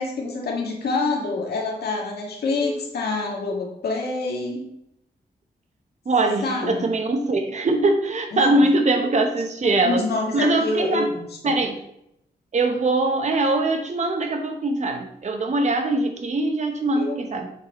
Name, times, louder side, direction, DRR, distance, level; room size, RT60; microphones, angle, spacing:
voice 1, 0.0-4.6 6.2-6.9 8.3-8.6 9.6-11.2 17.0-17.2, left 3 dB, 80° left, 0 dB, 1.6 m, -27 dB
voice 2, 6.0-10.1 10.3-11.1 11.4-11.8 12.5-17.5, right 2 dB, 45° right, 5 dB, 1.0 m, -22 dB
7.4 x 4.1 x 4.2 m, 0.77 s
wide cardioid pair, 125°, 16 cm